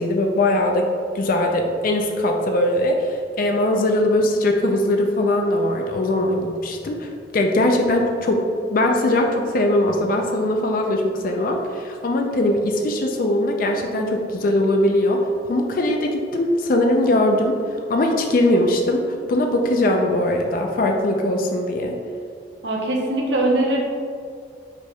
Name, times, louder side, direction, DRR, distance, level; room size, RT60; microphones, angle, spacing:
voice 1, 0.0-8.4 8.7-15.2 15.5-17.6 17.9-22.0, left 1 dB, 50° left, 2 dB, 0.4 m, -20 dB
voice 2, 22.6-23.8, right 1 dB, 70° right, -1 dB, 0.7 m, -21 dB
5.1 x 4.4 x 2.2 m, 2.3 s
head